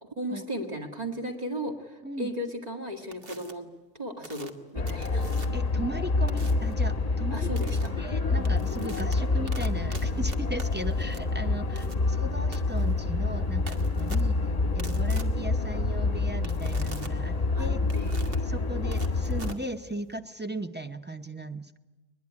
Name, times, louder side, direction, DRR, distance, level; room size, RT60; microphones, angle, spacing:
voice 1, 0.0-3.7 4.0-5.3 7.3-7.9 17.5-17.7 17.9-18.4, equal, 35° right, 3 dB, 2.1 m, -36 dB
sound 1, 3.1-3.5 4.2-5.7 6.3-6.7 7.6-7.9 8.3-20.2, right 3 dB, 50° right, 1.8 m, -46 dB
sound 2, 4.8-19.5, left 3 dB, 35° left, 1.2 m, -27 dB
voice 2, 5.5-14.4 14.7-18.0 18.4-21.8, right 1 dB, 10° right, 5 dB, 0.6 m, -37 dB
21.5 x 21.0 x 9.8 m, 1.2 s
omnidirectional pair, 1.2 m